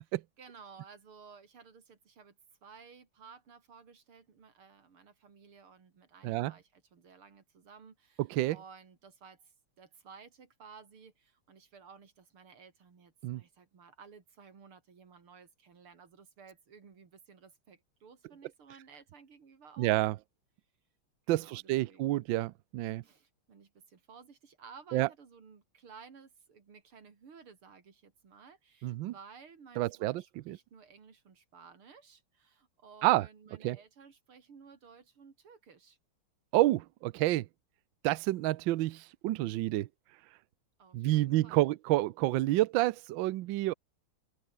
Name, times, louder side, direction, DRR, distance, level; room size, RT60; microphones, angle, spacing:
voice 1, 0.4-9.5 9.8-20.0 21.3-22.3 23.0-36.0 40.8-41.7, right 5 dB, 90° right, 3.8 m, -55 dB
voice 2, 8.2-8.6 13.2-13.4 19.8-20.1 21.3-23.0 24.9-25.1 28.8-29.1 29.8-30.6 33.0-33.2 33.6-33.8 36.5-37.5 38.0-39.9 40.9-43.7, right 17 dB, 70° right, 1.3 m, -29 dB
open air
omnidirectional pair, 2.3 m